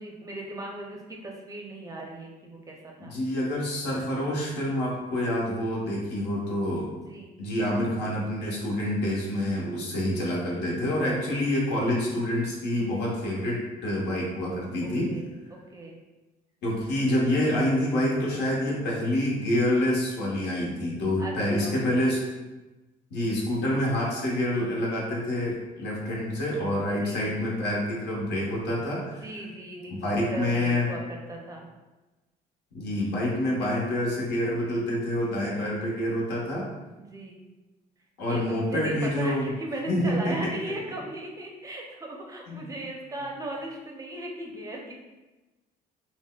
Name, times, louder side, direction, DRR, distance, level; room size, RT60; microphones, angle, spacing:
voice 1, 0.0-3.2 7.1-7.4 14.8-16.0 21.2-22.1 26.8-27.3 29.0-30.0 30.3-31.7 37.0-37.5 38.3-44.9, right 1 dB, 20° right, 0 dB, 0.5 m, -38 dB
voice 2, 3.0-6.9 7.4-15.1 16.6-22.2 23.1-29.2 30.0-30.9 32.7-36.7 38.2-39.5 39.9-40.4 42.5-42.7, left 1 dB, 80° left, -3 dB, 1.0 m, -27 dB
4.1 x 2.1 x 2.2 m, 1.1 s
cardioid pair, 110°, 17 cm